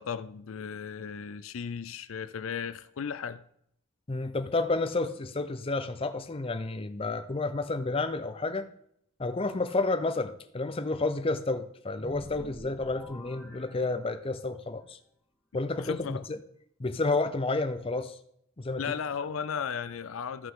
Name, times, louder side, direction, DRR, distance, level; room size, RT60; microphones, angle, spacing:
voice 1, 0.0-3.4 15.8-16.3 18.8-20.5, left 7 dB, 85° left, 0.5 m, -35 dB
voice 2, 4.1-8.7 9.2-15.0 15.5-16.4 16.8-18.2 18.6-18.8, left 3 dB, 30° left, 0.5 m, -30 dB
sound 1, 12.0-14.5, equal, ahead, 1.5 m, -46 dB
14.0 x 5.7 x 3.7 m
head